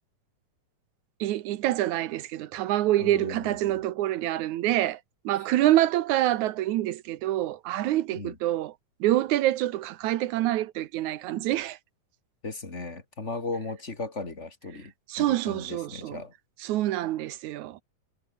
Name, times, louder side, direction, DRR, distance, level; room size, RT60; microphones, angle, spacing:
voice 1, 1.2-5.0 5.3-8.7 9.0-11.8 15.1-16.2 16.6-17.8, right 14 dB, 70° right, 2.1 m, -26 dB
voice 2, 3.0-3.8 8.1-8.4 12.4-14.9 15.2-16.3, left 3 dB, 20° left, 3.1 m, -36 dB
omnidirectional pair, 3.8 m